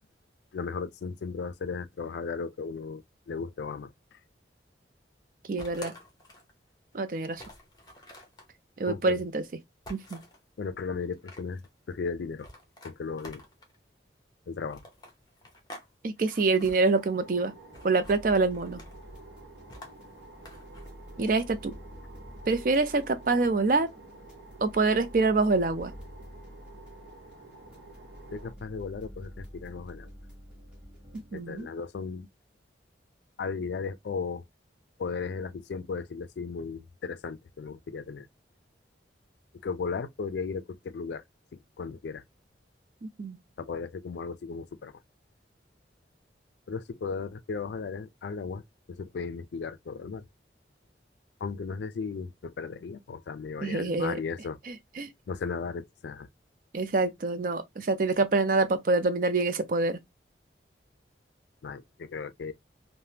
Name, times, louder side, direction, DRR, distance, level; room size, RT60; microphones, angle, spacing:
voice 1, 0.5-4.2 8.9-9.2 10.6-11.6 11.9-12.5 12.8-13.4 14.5-14.8 28.3-30.1 31.3-32.3 33.4-34.4 35.0-38.3 39.6-41.2 41.5-42.2 43.6-44.9 46.7-48.6 48.9-50.3 51.4-54.6 55.3-56.3 61.6-62.5, left 5 dB, 70° left, 0.4 m, -36 dB
voice 2, 5.5-5.9 6.9-7.4 8.8-9.4 9.9-10.2 16.0-17.5 17.8-18.8 21.2-21.7 22.5-23.9 24.6-25.9 31.3-31.7 43.0-43.4 53.6-54.2 54.7-55.1 56.7-60.0, right 3 dB, 50° right, 0.4 m, -26 dB
sound 1, 5.6-6.5 6.9-7.0 7.4-8.5 9.8-10.4 11.0-11.7 12.4-13.8 14.7-15.9 16.2-16.8 17.7-18.2 18.5-19.1 19.7-20.9, left 1 dB, 25° left, 0.8 m, -48 dB
sound 2, 16.9-28.5, right 3 dB, 90° right, 0.7 m, -51 dB
sound 3, 18.0-31.7, equal, 5° right, 1.0 m, -48 dB
3.3 x 2.1 x 2.7 m
head